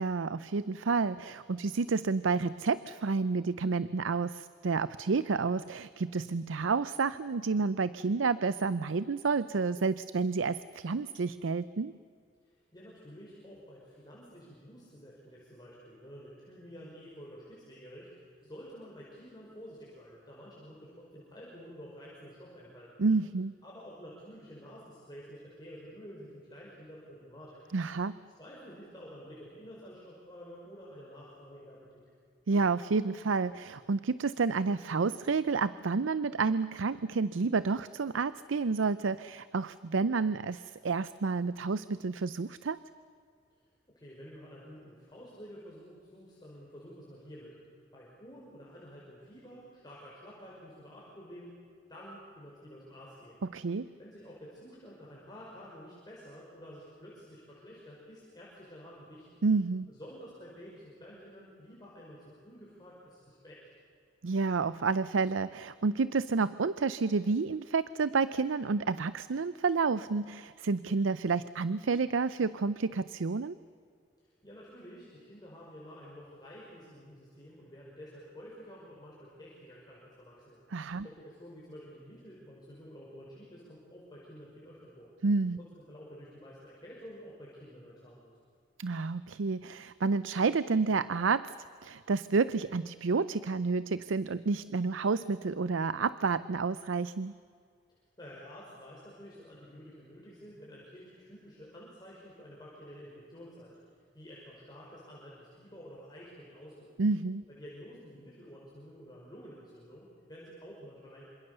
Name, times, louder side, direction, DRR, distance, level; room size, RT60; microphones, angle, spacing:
voice 1, 0.0-11.9 23.0-23.5 27.7-28.1 32.5-42.8 53.5-53.9 59.4-59.9 64.2-73.5 80.7-81.0 85.2-85.6 88.8-91.5 91.8-97.3 107.0-107.4, right 4 dB, 85° right, 16 dB, 0.6 m, -30 dB
voice 2, 12.4-22.9 23.6-27.7 28.4-32.0 43.9-47.6 47.9-51.6 51.9-59.4 59.9-63.6 74.2-80.6 81.0-85.1 85.6-88.3 98.2-106.9 107.5-111.2, equal, 20° left, -6 dB, 5.5 m, -50 dB
27.0 x 26.5 x 6.9 m, 2.3 s
head